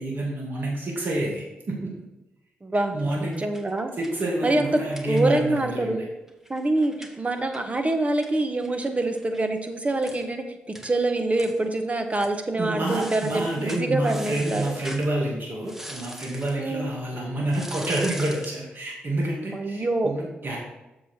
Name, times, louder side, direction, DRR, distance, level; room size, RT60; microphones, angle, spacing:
voice 1, 0.0-1.9 2.9-3.4 4.0-6.0 12.6-20.6, right 1 dB, 50° right, -2 dB, 2.3 m, -28 dB
voice 2, 2.6-2.9 3.2-3.9 4.4-4.8 5.1-6.0 6.5-10.4 10.8-14.7 16.6-16.9 19.5-20.1, right 2 dB, 30° right, 6 dB, 1.2 m, -25 dB
sound 1, 3.0-5.6 5.9-6.0 6.3-9.4 9.7-9.8 10.0-10.3 10.7-10.9 11.4-11.8 12.1-12.3 12.8-15.1 15.6-16.6 17.5-18.6, equal, 10° right, 1.4 m, -42 dB
7.2 x 5.9 x 4.4 m, 0.98 s
supercardioid pair, 40°, 4 cm